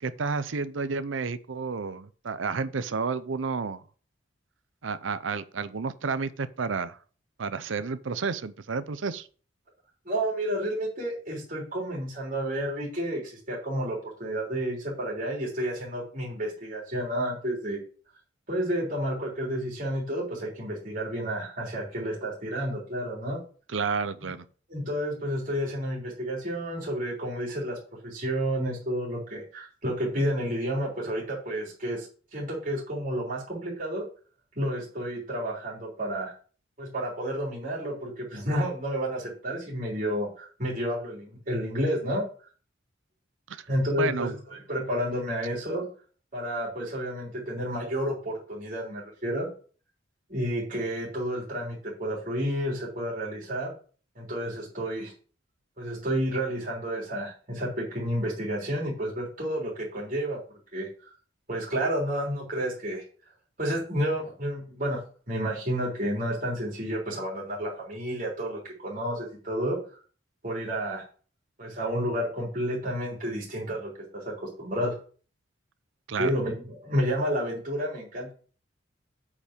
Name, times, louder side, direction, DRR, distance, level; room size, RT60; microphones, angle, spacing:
voice 1, 0.0-3.8 4.8-7.0 7.4-9.3 23.7-24.4 43.5-43.7 44.0-44.3 76.1-76.3, right 5 dB, 80° right, 0.6 m, -31 dB
voice 2, 10.0-17.8 18.5-23.4 24.2-24.3 24.7-27.8 28.0-34.1 34.5-36.3 36.8-42.3 43.7-45.9 46.3-49.5 50.3-53.7 54.1-55.1 55.8-60.4 60.7-61.1 61.5-63.0 63.6-65.0 65.3-69.8 70.4-71.0 71.6-75.0 76.2-78.3, equal, 45° right, 3.4 m, -30 dB
8.4 x 5.3 x 5.1 m
head